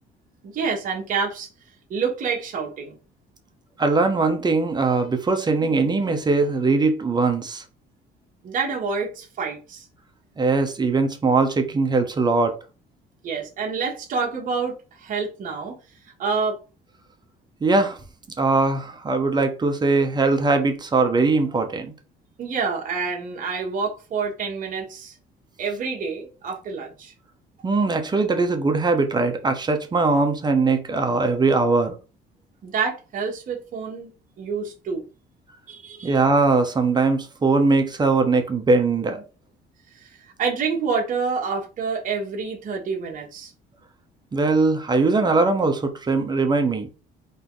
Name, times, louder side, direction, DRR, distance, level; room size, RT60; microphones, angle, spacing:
voice 1, 0.4-1.5 1.9-3.0 8.4-9.8 13.2-15.8 16.2-16.6 22.4-25.1 25.6-27.1 32.6-34.1 34.4-35.0 35.7-36.2 40.0-40.1 40.4-43.5, right 5 dB, 50° right, 1.4 m, -27 dB
voice 2, 3.8-7.6 10.4-12.6 17.6-18.0 18.4-21.9 27.6-32.0 36.0-39.2 44.3-46.9, right 3 dB, 25° right, 0.9 m, -21 dB
4.1 x 3.0 x 3.9 m
cardioid pair, 110°, 17 cm